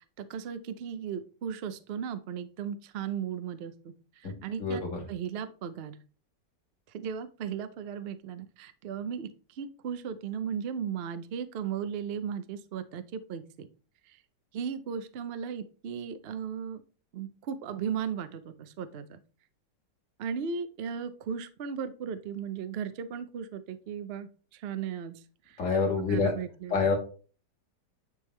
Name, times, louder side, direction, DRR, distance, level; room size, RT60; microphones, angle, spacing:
voice 1, 0.2-3.7 4.4-4.8 5.1-5.9 6.9-9.3 9.6-13.7 14.5-16.8 17.1-19.2 20.2-24.3 24.6-25.1 26.1-26.8, right 7 dB, 85° right, 11 dB, 0.5 m, -36 dB
voice 2, 4.6-5.0 25.6-26.3 26.7-26.9, left 4 dB, 45° left, -1 dB, 2.4 m, -26 dB
9.7 x 3.5 x 3.3 m, 0.38 s
omnidirectional pair, 1.9 m